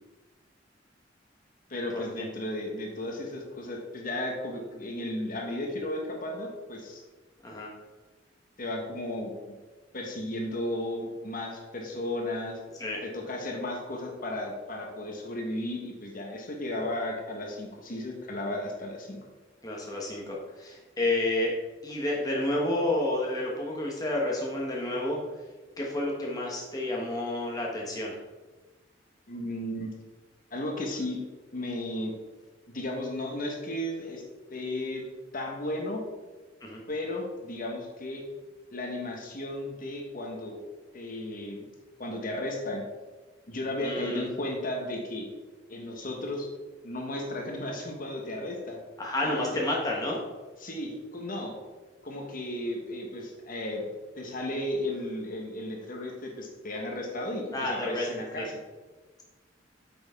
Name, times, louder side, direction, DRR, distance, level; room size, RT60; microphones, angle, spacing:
voice 1, 1.7-7.0 8.6-9.3 9.9-12.6 13.0-19.2 29.3-29.9 30.5-31.2 31.5-32.1 32.7-34.2 34.5-35.0 35.3-36.0 36.9-38.2 38.7-40.6 40.9-41.7 42.0-42.8 43.5-45.3 45.7-46.5 46.8-48.8 49.2-49.6 50.6-51.6 52.0-53.9 54.2-58.6, left 1 dB, 50° left, 1 dB, 1.4 m, -34 dB
voice 2, 19.6-21.5 21.8-25.2 25.8-28.2 36.6-36.8 43.8-44.3 49.0-50.2 57.5-58.1 58.3-58.4, left 1 dB, 20° left, -2 dB, 1.1 m, -30 dB
8.5 x 6.1 x 3.6 m, 1.3 s
head